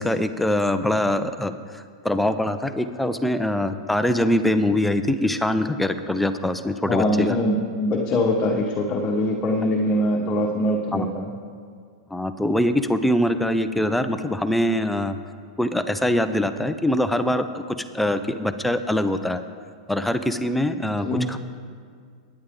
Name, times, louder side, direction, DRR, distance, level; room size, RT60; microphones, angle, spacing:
voice 1, 0.0-7.4 10.9-11.2 12.1-15.2 15.6-19.4 19.9-21.4, left 1 dB, 5° left, 9 dB, 0.6 m, -23 dB
voice 2, 6.9-11.3 21.0-21.4, left 1 dB, 25° left, -1 dB, 1.3 m, -23 dB
21.0 x 9.8 x 3.8 m, 2.1 s
hypercardioid pair, 130°, 3 cm